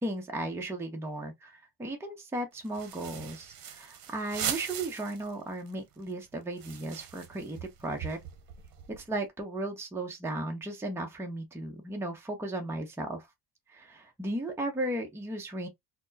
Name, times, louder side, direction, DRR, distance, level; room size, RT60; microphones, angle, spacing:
voice 1, 0.0-8.2 8.9-13.3 13.7-15.7, right 1 dB, 5° right, 0.6 m, -35 dB
sound 1, 2.6-5.3 5.7-5.8 6.0-9.1, right 9 dB, 60° right, 0.8 m, -40 dB
4.2 x 2.0 x 2.6 m
cardioid pair, 130°, 40 cm